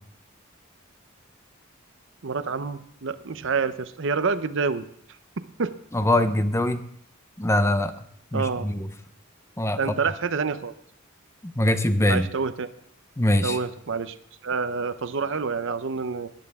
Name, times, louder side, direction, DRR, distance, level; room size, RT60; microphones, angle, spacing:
voice 1, 2.2-4.9 5.4-5.7 8.3-8.7 9.8-10.7 12.1-12.7 13.4-14.2 14.4-16.3, right 5 dB, 65° right, 12 dB, 0.7 m, -27 dB
voice 2, 5.9-6.8 7.4-7.9 8.3-8.9 9.6-9.8 11.4-12.3 13.2-13.6, left 1 dB, 15° left, 10 dB, 0.7 m, -22 dB
18.0 x 11.0 x 3.6 m, 0.68 s
head